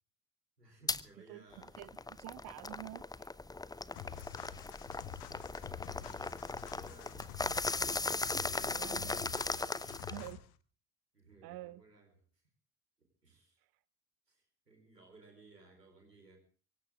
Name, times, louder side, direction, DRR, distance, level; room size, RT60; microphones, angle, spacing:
voice 1, 0.6-2.0 3.8-4.2 4.9-7.4 8.3-10.4 11.1-12.4 13.0-13.6 14.3-16.4, right 3 dB, 90° right, 3 dB, 4.5 m, -60 dB
sound 1, 0.9-1.0 1.5-10.3, left 3 dB, 10° left, 0.7 m, -38 dB
voice 2, 2.2-3.3 4.1-4.3 8.6-9.1 10.1-10.4 11.4-11.8, right 18 dB, 50° right, 17 dB, 0.8 m, -47 dB
sound 2, 3.9-10.6, left 12 dB, 60° left, 1.2 m, -49 dB
24.5 x 15.0 x 3.6 m, 0.42 s
figure-of-eight pair, 55°, 47 cm